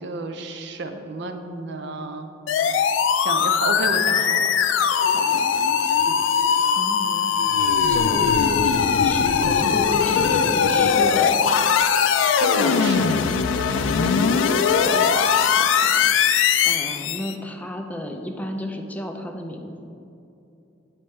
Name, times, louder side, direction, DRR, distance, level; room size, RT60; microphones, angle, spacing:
voice 1, 0.0-2.3 2.6-2.9 3.1-4.5 6.1-6.2 12.4-13.1 13.5-13.6, right 3 dB, 65° right, 7 dB, 0.5 m, -31 dB
sound 1, 2.5-17.3, left 6 dB, 85° left, 0.3 m, -20 dB
voice 2, 5.1-5.5 6.8-7.3 7.9-11.4 14.9-19.8, left 1 dB, 10° left, 3 dB, 0.4 m, -33 dB
8.5 x 4.4 x 3.2 m, 2.7 s
head